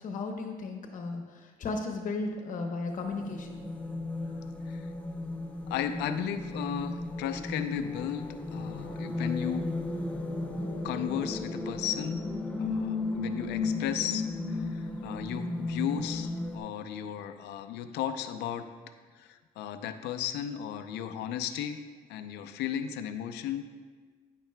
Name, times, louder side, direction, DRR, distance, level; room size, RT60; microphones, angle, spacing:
voice 1, 0.0-3.6, left 3 dB, 50° left, 2 dB, 1.0 m, -35 dB
sound 1, 2.9-16.6, left 2 dB, 5° left, 0.6 m, -35 dB
voice 2, 5.7-8.2 8.5-9.7 10.8-12.2 12.6-18.7 19.2-21.8 22.1-23.6, left 9 dB, 85° left, 9 dB, 0.5 m, -35 dB
9.4 x 8.9 x 2.2 m, 1.5 s
cardioid pair, 110°, 17 cm